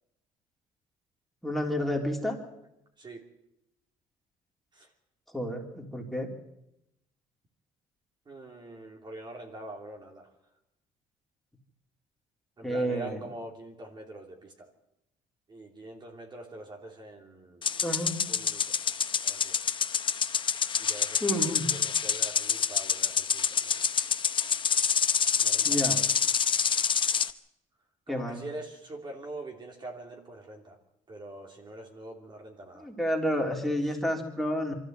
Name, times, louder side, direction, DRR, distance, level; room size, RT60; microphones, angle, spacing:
voice 1, 1.4-2.4 5.3-6.3 12.6-13.2 17.8-18.2 21.2-21.7 25.7-26.0 28.1-28.5 32.8-34.7, equal, ahead, 0 dB, 3.6 m, -30 dB
voice 2, 8.3-10.3 12.6-14.7 15.5-17.8 18.3-18.7 19.2-19.6 20.8-23.9 25.4-25.9 28.1-30.8 31.1-32.9 33.9-34.0, right 2 dB, 35° right, 1 dB, 3.1 m, -44 dB
sound 1, 17.6-27.3, left 7 dB, 40° left, 0.9 m, -27 dB
24.0 x 13.5 x 8.0 m, 0.87 s
cardioid pair, 105°, 14 cm